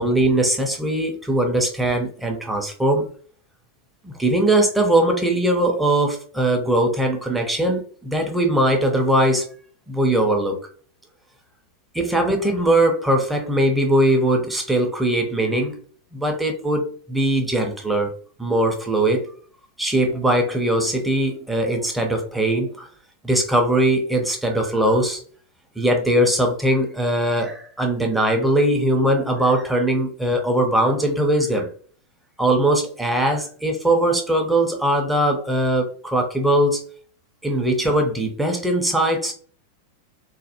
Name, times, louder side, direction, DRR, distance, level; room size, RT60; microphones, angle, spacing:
voice 1, 0.0-3.1 4.0-9.5 9.9-10.6 11.9-15.8 16.1-18.1 18.4-19.3 19.8-22.9 23.2-25.2 25.8-31.7 32.4-36.8 37.4-39.3, right 1 dB, 5° right, 3 dB, 0.7 m, -20 dB
3.1 x 2.1 x 2.9 m, 0.43 s
figure-of-eight pair, 90°, 0 cm